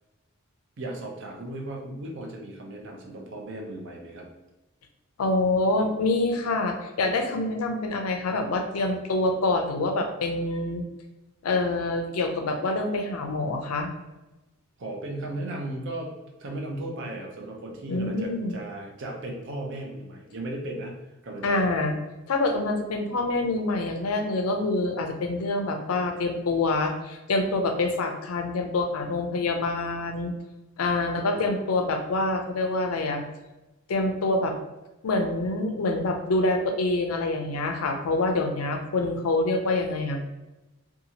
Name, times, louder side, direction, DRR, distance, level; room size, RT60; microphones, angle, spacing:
voice 1, 0.8-4.3 14.8-21.0 21.2-21.8 31.2-31.6, right 1 dB, 55° right, 0 dB, 0.6 m, -36 dB
voice 2, 5.2-10.8 11.4-13.9 17.9-18.6 21.4-21.9 22.3-30.3 30.8-33.2 33.9-34.5 35.0-40.2, left 2 dB, 80° left, 5 dB, 0.5 m, -26 dB
2.7 x 2.4 x 2.8 m, 1.0 s
head